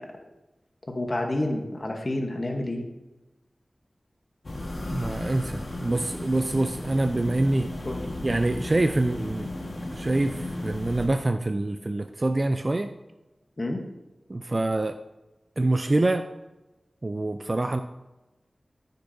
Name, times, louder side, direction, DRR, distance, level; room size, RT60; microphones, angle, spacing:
voice 1, 0.9-2.8 7.5-8.0 13.6-13.8, left 1 dB, 45° left, 2 dB, 1.1 m, -29 dB
sound 1, 4.4-11.1, left 1 dB, 70° left, 1.5 m, -35 dB
voice 2, 4.9-7.7 8.2-9.5 9.9-12.9 14.3-15.0 15.6-16.3 17.0-17.8, right 2 dB, 40° right, 7 dB, 0.4 m, -25 dB
14.5 x 6.6 x 2.7 m, 1.1 s
wide cardioid pair, 60°, 0 cm